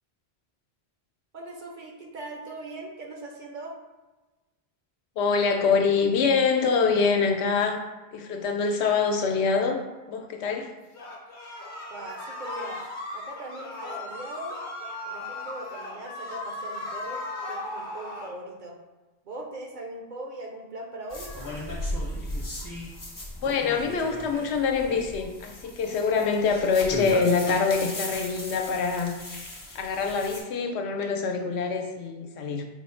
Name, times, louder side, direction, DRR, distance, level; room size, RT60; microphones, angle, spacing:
voice 1, 1.3-3.8 11.9-12.8 13.1-14.6 15.1-18.8 19.2-21.3, right 2 dB, 55° right, 0 dB, 0.7 m, -40 dB
voice 2, 5.2-7.8 8.1-9.8 10.1-10.7 23.4-29.2 29.7-32.6, left 5 dB, 85° left, 4 dB, 0.8 m, -25 dB
sound 1, 10.9-18.3, left 2 dB, 55° left, 0.8 m, -37 dB
sound 2, 21.1-30.4, left 1 dB, 25° left, 0.5 m, -36 dB
4.2 x 2.0 x 4.3 m, 1.2 s
omnidirectional pair, 1.1 m